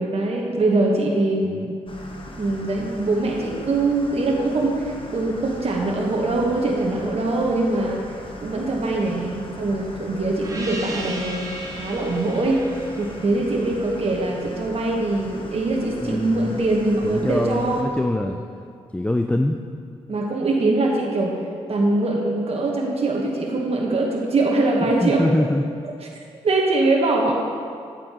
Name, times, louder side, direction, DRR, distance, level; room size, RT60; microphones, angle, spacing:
voice 1, 0.0-1.8 2.4-8.0 8.4-11.5 11.8-12.7 13.0-17.8 20.1-21.3 21.7-25.2 26.4-27.3, right 2 dB, 50° right, -2 dB, 1.2 m, -22 dB
sound 1, 1.9-17.8, left 1 dB, 40° left, 1.2 m, -40 dB
Gong, 10.4-15.4, right 1 dB, 25° right, 1.4 m, -36 dB
voice 2, 16.0-16.6 17.0-18.4 18.9-19.6 24.8-25.6, left 1 dB, 10° left, 4 dB, 0.4 m, -24 dB
8.6 x 8.5 x 3.0 m, 2.3 s
supercardioid pair, 45°, 13 cm